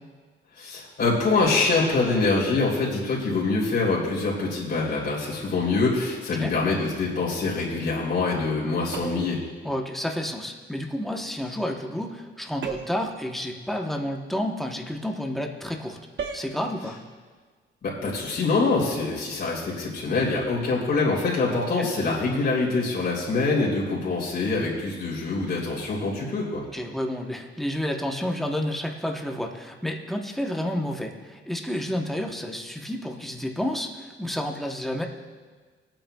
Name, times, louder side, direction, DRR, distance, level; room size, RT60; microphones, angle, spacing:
voice 1, 0.6-9.4 17.8-26.6, left 3 dB, 55° left, -5 dB, 3.1 m, -25 dB
sound 1, 8.9-9.4 12.6-13.1 16.2-16.5, right 6 dB, 65° right, 1.0 m, -34 dB
voice 2, 9.6-16.0 16.3-17.0 21.8-21.9 26.7-35.0, left 1 dB, ahead, 1 dB, 0.9 m, -30 dB
22.0 x 8.9 x 2.3 m, 1.5 s
wide cardioid pair, 170°, 19 cm